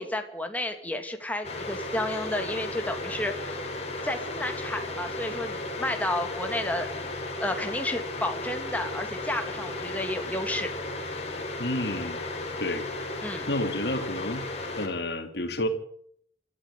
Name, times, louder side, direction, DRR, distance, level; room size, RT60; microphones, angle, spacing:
voice 1, 0.0-3.6 4.0-6.9 7.4-10.7 13.2-13.5, left 1 dB, 10° left, 5 dB, 2.6 m, -31 dB
sound 1, 1.4-14.9, left 2 dB, 35° left, 4.9 m, -35 dB
voice 2, 11.6-12.2 12.6-12.9 13.5-14.5 14.8-15.7, left 1 dB, 60° left, 5 dB, 3.1 m, -30 dB
26.0 x 14.0 x 8.4 m, 0.67 s
head